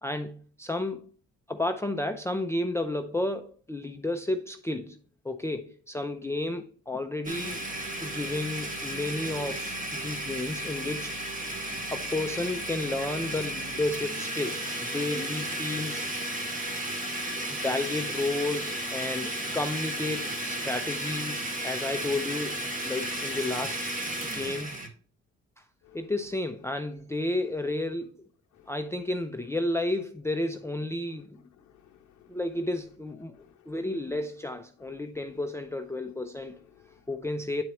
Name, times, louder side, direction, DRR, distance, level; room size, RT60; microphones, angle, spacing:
voice 1, 0.0-1.1 1.5-5.0 5.2-7.6 8.0-11.2 11.9-16.1 17.5-24.7 25.6-25.7 25.9-28.2 28.7-31.4 32.3-33.4 33.7-36.6 37.1-37.6, left 2 dB, 10° left, 0.5 m, -32 dB
Domestic sounds home sounds, 7.2-24.9, right 1 dB, 25° right, 1.6 m, -34 dB
voice 2, 31.6-32.4 33.3-33.7 34.8-35.0 36.5-37.0, left 10 dB, 75° left, 0.7 m, -58 dB
9.5 x 4.5 x 3.0 m
cardioid pair, 90°, 30 cm